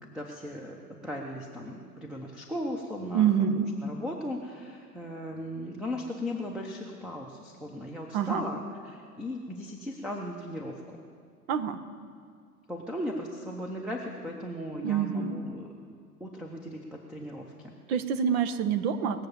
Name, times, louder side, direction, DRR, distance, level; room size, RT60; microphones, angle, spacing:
voice 1, 0.1-11.0 12.7-15.6 16.2-17.8, equal, ahead, 0 dB, 0.9 m, -37 dB
voice 2, 3.1-3.7 8.1-8.4 11.5-11.8 14.8-15.5 17.9-19.3, right 8 dB, 45° right, 10 dB, 1.0 m, -26 dB
20.0 x 7.0 x 7.3 m, 2.2 s
figure-of-eight pair, 95°, 46 cm